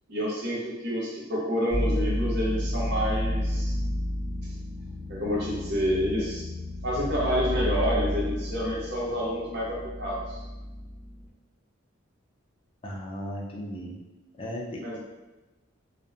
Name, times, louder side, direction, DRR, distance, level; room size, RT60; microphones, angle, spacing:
voice 1, 0.1-3.8 5.1-6.5 6.8-10.4 14.8-15.0, equal, 55° right, -4 dB, 0.7 m, -28 dB
sound 1, 1.7-11.3, left 1 dB, 15° right, 0.7 m, -31 dB
voice 2, 12.8-13.9 14.4-15.0, equal, 25° left, -2 dB, 0.4 m, -36 dB
2.6 x 2.0 x 2.4 m, 1.1 s
head